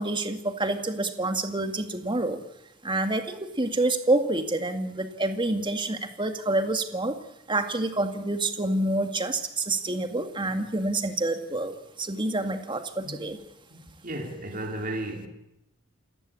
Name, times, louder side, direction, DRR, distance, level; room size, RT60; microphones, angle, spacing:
voice 1, 0.0-2.4 2.8-7.2 7.5-13.4, right 2 dB, 25° right, 2.1 m, -27 dB
voice 2, 13.7-15.3, right 1 dB, 45° right, 3.7 m, -35 dB
28.0 x 14.5 x 8.7 m
head